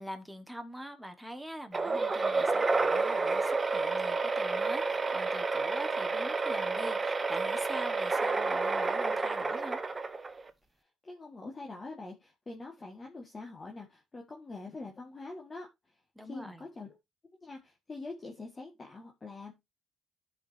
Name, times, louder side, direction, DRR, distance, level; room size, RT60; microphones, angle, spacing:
voice 1, 0.0-9.8 16.1-16.6, equal, 5° right, 1.5 m, -44 dB
sound 1, 1.7-10.5, right 3 dB, 25° right, 0.9 m, -30 dB
voice 2, 11.0-15.7 16.2-17.0 17.4-19.5, left 3 dB, 30° left, 1.8 m, -44 dB
14.0 x 5.1 x 2.8 m
cardioid pair, 90°, 0 cm